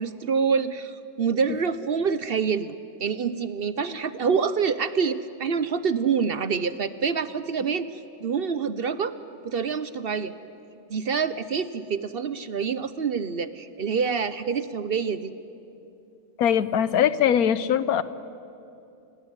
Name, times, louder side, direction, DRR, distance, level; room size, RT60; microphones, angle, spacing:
voice 1, 0.0-2.7 3.0-9.2 9.4-10.3 10.9-15.3, right 6 dB, 50° right, 14 dB, 0.8 m, -26 dB
voice 2, 16.4-18.0, left 9 dB, 80° left, 15 dB, 1.3 m, -21 dB
28.5 x 17.0 x 9.7 m, 2.8 s
omnidirectional pair, 1.5 m